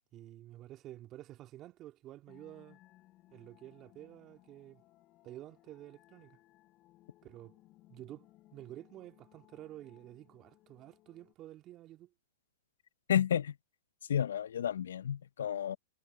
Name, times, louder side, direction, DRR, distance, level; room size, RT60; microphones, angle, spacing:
voice 1, 0.1-2.8 3.3-4.8 5.2-6.4 7.2-7.6 7.9-12.1, right 14 dB, 35° right, 2.5 m, -50 dB
sound 1, 2.3-11.3, left 17 dB, 35° left, 6.6 m, -64 dB
voice 2, 13.1-13.5 14.1-15.8, left 9 dB, 75° left, 0.8 m, -31 dB
hypercardioid pair, 110°, 0 cm